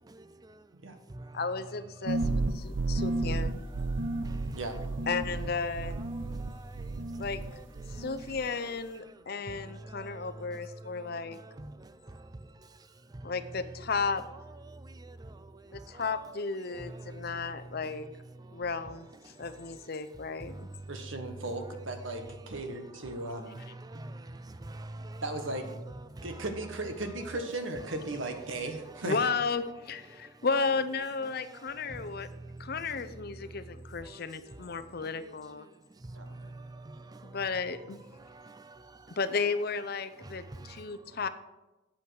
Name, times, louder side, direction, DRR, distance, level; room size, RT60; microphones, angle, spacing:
voice 1, 0.1-0.6 1.1-1.4 2.0-2.1 2.7-3.0 4.1-4.6 6.1-7.0 7.5-8.1 8.9-9.2 9.5-12.5 13.1-13.3 14.6-16.0 16.7-17.8 18.4-18.6 19.3-19.5 20.4-20.7 23.4-25.2 26.1-26.4 30.1-30.3 31.5-32.7 33.5-33.7 34.0-34.6 35.2-35.3 36.0-37.4 38.2-39.2 40.2-41.2, right 2 dB, 20° right, 0.4 m, -47 dB
voice 2, 1.3-3.6 5.1-6.0 7.2-7.4 7.9-11.4 13.2-14.2 15.7-18.1 18.5-20.7 29.0-32.3 32.6-35.7 37.2-38.0 39.2-41.3, left 4 dB, 55° left, 0.7 m, -34 dB
sound 1, 2.1-7.5 7.8-8.5, right 2 dB, 70° right, 0.7 m, -32 dB
voice 3, 20.9-23.6 25.2-25.7 26.2-29.2 36.1-36.4, right 2 dB, 85° right, 1.4 m, -36 dB
8.7 x 8.2 x 6.4 m
head